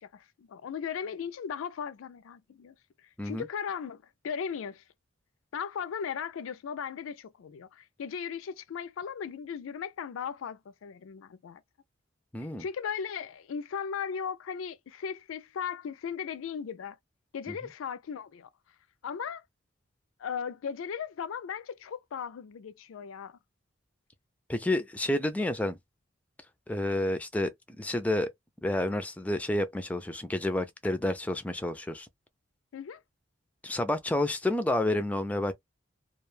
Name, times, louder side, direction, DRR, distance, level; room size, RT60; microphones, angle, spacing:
voice 1, 0.0-2.7 3.2-4.8 5.5-11.6 12.6-17.0 17.3-18.5 19.0-19.4 20.2-23.4 32.7-33.0, left 7 dB, 85° left, 0.4 m, -37 dB
voice 2, 12.3-12.6 24.5-25.8 26.7-28.3 28.6-32.1 33.6-35.5, left 1 dB, 5° left, 0.3 m, -29 dB
2.3 x 2.2 x 3.1 m
head